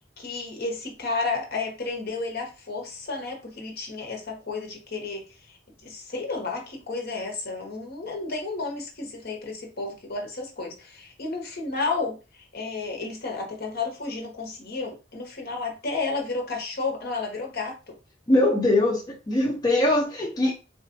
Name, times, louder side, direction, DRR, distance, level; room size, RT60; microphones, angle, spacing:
voice 1, 0.2-5.6 5.8-17.9, left 3 dB, 55° left, 1.0 m, -32 dB
voice 2, 18.3-20.5, left 1 dB, 20° left, 0.6 m, -22 dB
4.1 x 2.5 x 2.6 m
head